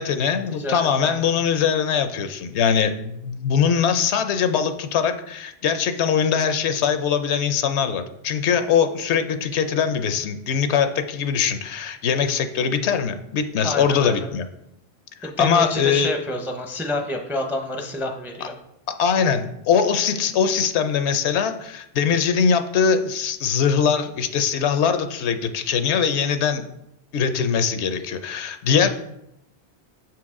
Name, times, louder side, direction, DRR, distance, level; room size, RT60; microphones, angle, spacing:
voice 1, 0.0-14.5 15.2-16.1 19.0-26.6 27.1-28.9, left 7 dB, 80° left, 9 dB, 0.9 m, -22 dB
voice 2, 0.5-1.3 13.6-14.3 15.2-18.5, left 1 dB, 5° right, 4 dB, 0.4 m, -29 dB
6.4 x 4.6 x 3.6 m, 0.81 s
omnidirectional pair, 1.1 m